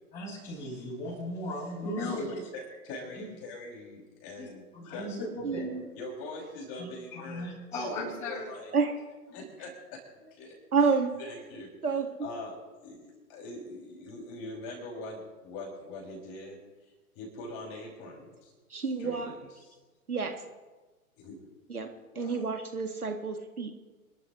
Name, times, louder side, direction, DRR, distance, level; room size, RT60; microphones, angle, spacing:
voice 1, 0.1-2.4 4.4-4.5 4.7-5.7 6.8-8.4, left 1 dB, 15° left, -10 dB, 6.5 m, -36 dB
voice 2, 2.2-5.1 6.0-7.5 7.9-8.7 9.3-10.0 10.3-10.5 10.8-11.7 12.2-12.6 12.8-18.5 19.0-19.7 21.2-21.4 22.1-22.5, left 2 dB, 30° left, -1 dB, 6.1 m, -43 dB
voice 3, 5.4-5.8 8.7-9.0 10.7-11.1 11.8-12.3 18.7-19.3 20.1-20.4 21.7-21.9 22.2-23.7, right 5 dB, 80° right, 6 dB, 2.1 m, -29 dB
28.5 x 12.5 x 3.1 m, 1.3 s
figure-of-eight pair, 110°, 44 cm